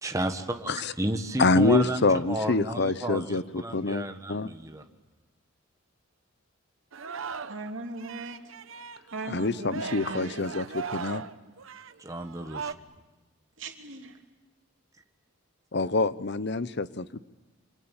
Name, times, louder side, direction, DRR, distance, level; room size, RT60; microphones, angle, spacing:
voice 1, 0.0-4.8 12.0-12.7, right 1 dB, 15° right, 5 dB, 1.6 m, -32 dB
voice 2, 1.4-4.5 9.3-11.2 15.7-17.2, left 3 dB, 55° left, 15 dB, 0.9 m, -26 dB
Singing, 6.9-7.7 8.0-12.7, right 5 dB, 80° right, 1.1 m, -38 dB
voice 3, 7.5-8.4 9.1-10.2 13.6-14.1, right 3 dB, 65° right, 4 dB, 3.2 m, -38 dB
28.0 x 26.0 x 7.3 m, 1.2 s
head